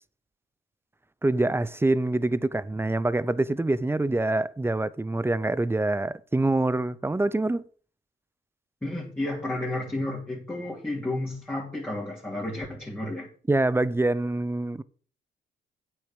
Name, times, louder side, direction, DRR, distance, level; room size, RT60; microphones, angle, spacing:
voice 1, 1.2-7.6 13.5-14.8, right 2 dB, 10° right, 0.6 m, -25 dB
voice 2, 8.8-13.3, left 1 dB, 10° left, 3.0 m, -32 dB
8.5 x 6.8 x 6.4 m
cardioid pair, 90°, 20 cm